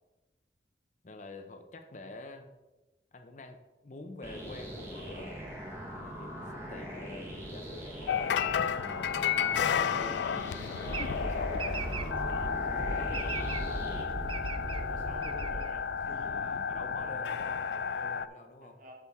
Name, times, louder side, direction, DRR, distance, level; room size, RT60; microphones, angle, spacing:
voice 1, 1.0-2.5 3.1-3.6 3.8-5.4 5.9-11.8 12.8-13.9 16.2-18.8, left 2 dB, 45° left, 6 dB, 0.6 m, -47 dB
sound 1, 4.2-14.0, equal, 15° right, 1.3 m, -42 dB
sound 2, 8.1-18.3, left 7 dB, 80° left, 0.3 m, -32 dB
sound 3, 10.9-16.3, right 2 dB, 30° right, 0.4 m, -37 dB
voice 2, 12.8-13.1 14.7-16.3 16.9-17.6 18.6-18.9, equal, 50° right, 1 dB, 1.5 m, -50 dB
8.2 x 6.2 x 3.5 m, 1.1 s
head